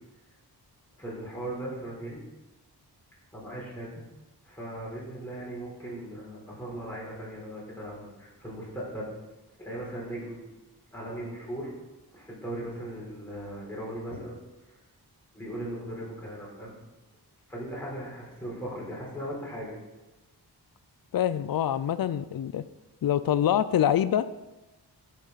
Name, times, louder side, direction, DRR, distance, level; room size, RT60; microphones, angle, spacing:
voice 1, 1.0-2.2 3.3-3.9 4.5-9.1 9.6-10.5 10.9-11.7 12.1-14.4 15.3-16.7 17.5-19.8, right 1 dB, 5° left, -6 dB, 3.9 m, -38 dB
voice 2, 21.1-22.6 23.0-24.3, left 10 dB, 60° left, 14 dB, 0.5 m, -25 dB
13.0 x 6.5 x 4.1 m, 1.1 s
wide cardioid pair, 115°, 41 cm